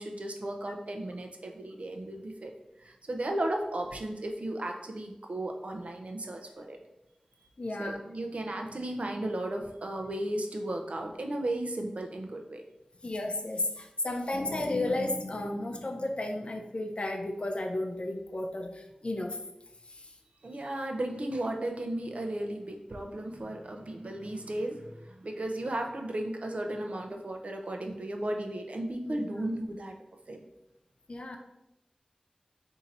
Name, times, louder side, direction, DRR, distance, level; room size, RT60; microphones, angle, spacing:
voice 1, 0.0-2.5 2.8-6.8 7.8-12.6 20.4-29.9 30.3-30.4, right 1 dB, 65° right, 3 dB, 0.6 m, -35 dB
voice 2, 7.6-8.0 13.0-19.4 19.9-20.1 29.1-29.2 31.1-31.4, left 2 dB, 50° left, 3 dB, 0.5 m, -33 dB
sound 1, 14.3-17.1, left 1 dB, 25° left, 0.9 m, -40 dB
3.9 x 2.8 x 4.2 m, 0.88 s
wide cardioid pair, 55°, 2 cm